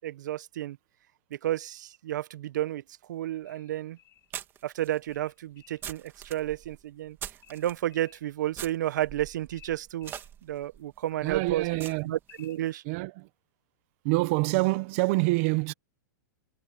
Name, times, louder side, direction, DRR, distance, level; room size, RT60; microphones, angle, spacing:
voice 1, 0.0-0.8 1.3-2.8 3.1-4.0 4.6-7.2 7.5-10.1 10.4-11.7 12.0-12.8, right 13 dB, 70° right, 1.2 m, -31 dB
sound 1, 3.2-3.3 4.3-7.8 8.5-12.5, right 10 dB, 20° right, 2.5 m, -44 dB
sound 2, 3.4-4.3 5.1-5.9 7.4-8.3 9.5-10.3 11.7-12.6, left 12 dB, 25° left, 7.2 m, -56 dB
voice 2, 11.2-12.1 12.8-13.3 14.0-15.7, right 23 dB, 45° right, 1.2 m, -26 dB
hypercardioid pair, 150°, 10 cm